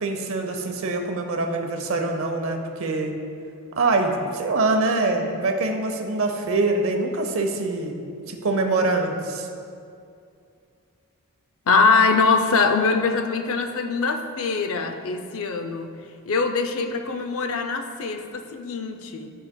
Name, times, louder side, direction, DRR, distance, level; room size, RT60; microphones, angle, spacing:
voice 1, 0.0-3.1 3.8-8.0 8.3-9.5, right 3 dB, 65° right, 4 dB, 0.7 m, -24 dB
voice 2, 11.7-15.9 16.3-19.3, left 4 dB, 65° left, 6 dB, 0.5 m, -22 dB
13.0 x 4.8 x 2.2 m, 2.4 s
head